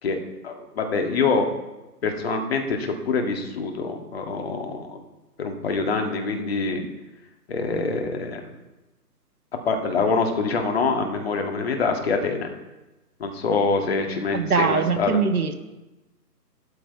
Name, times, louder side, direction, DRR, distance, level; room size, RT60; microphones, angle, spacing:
voice 1, 0.0-1.5 2.0-5.0 5.4-6.8 7.5-8.4 9.7-12.5 13.2-15.2, left 4 dB, 40° left, 3 dB, 1.9 m, -25 dB
voice 2, 14.3-15.5, right 5 dB, 60° right, 7 dB, 1.4 m, -22 dB
12.5 x 12.0 x 4.6 m, 1.1 s
figure-of-eight pair, 155°, 49 cm